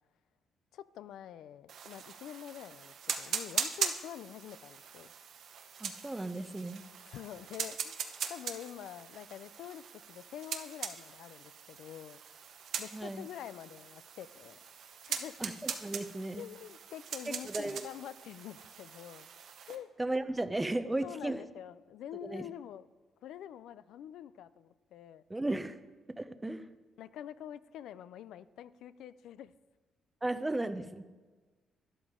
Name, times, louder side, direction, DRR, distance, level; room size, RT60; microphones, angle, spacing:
voice 1, 0.7-5.1 7.1-8.0 8.3-12.2 12.8-14.6 15.1-15.4 16.4-19.3 19.7-19.9 21.0-22.9 23.2-25.2 27.0-29.5, left 10 dB, 80° left, 16 dB, 0.4 m, -46 dB
sound 1, 1.7-19.8, right 7 dB, 70° right, 0.9 m, -41 dB
voice 2, 5.8-6.8 12.9-13.3 15.4-16.5 17.3-17.8 20.0-21.4 22.2-22.5 25.3-25.8 26.1-26.7 30.2-31.0, right 2 dB, 15° right, 11 dB, 0.6 m, -35 dB
12.0 x 11.0 x 3.7 m, 1.3 s
cardioid pair, 90°, 0 cm